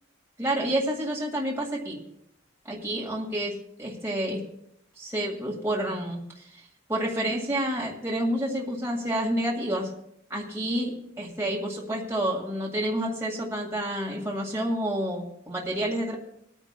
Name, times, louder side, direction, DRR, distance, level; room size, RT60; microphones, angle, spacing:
voice 1, 0.4-2.0 2.7-4.4 5.0-6.6 6.9-9.9 10.3-16.2, right 1 dB, 15° right, -4 dB, 1.9 m, -29 dB
26.5 x 9.1 x 2.2 m, 0.77 s
head